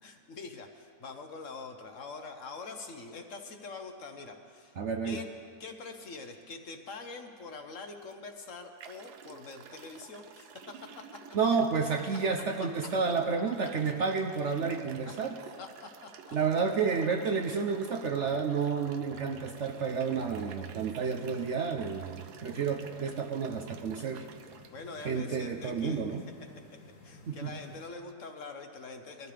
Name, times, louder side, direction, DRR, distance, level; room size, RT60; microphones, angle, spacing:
voice 1, 0.0-4.8 5.0-5.3 5.6-11.2 12.6-12.7 15.0-15.2 15.6-16.4 24.7-26.0 27.0-29.3, left 4 dB, 55° left, 5 dB, 1.1 m, -44 dB
voice 2, 4.8-5.2 11.3-15.3 16.3-24.2 25.0-26.3 27.3-27.6, right 5 dB, 60° right, 3 dB, 0.8 m, -30 dB
sound 1, 8.0-8.1 8.8-24.7, right 7 dB, 75° right, 1.2 m, -51 dB
sound 2, 19.7-27.9, left 2 dB, 70° left, 1.7 m, -54 dB
21.0 x 13.5 x 3.4 m, 2.3 s
omnidirectional pair, 1.7 m